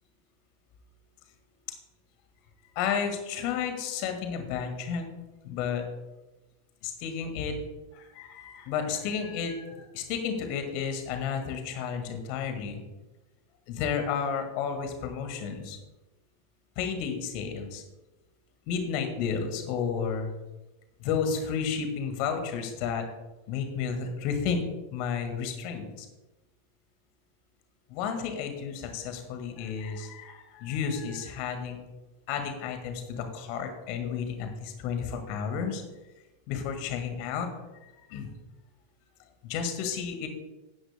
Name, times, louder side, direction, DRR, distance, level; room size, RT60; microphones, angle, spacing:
voice 1, 2.8-5.1 5.4-5.8 6.8-7.6 7.9-12.8 13.7-15.8 16.8-17.8 18.7-20.3 21.0-23.1 23.5-24.6 24.9-26.1 27.9-31.8 32.3-35.8 36.5-37.5 37.7-38.3 39.4-40.3, left 6 dB, 45° left, 6 dB, 1.8 m, -32 dB
16.0 x 9.9 x 2.2 m, 1.1 s
figure-of-eight pair, 90°, 0 cm